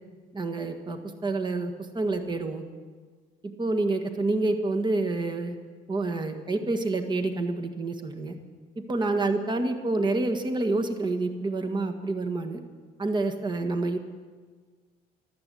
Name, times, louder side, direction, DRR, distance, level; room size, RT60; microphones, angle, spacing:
voice 1, 0.3-2.6 3.6-5.6 5.9-8.4 8.7-12.6 13.0-14.0, right 2 dB, 25° right, 5 dB, 1.6 m, -28 dB
14.0 x 12.0 x 8.4 m, 1.5 s
cardioid pair, 110°, 17 cm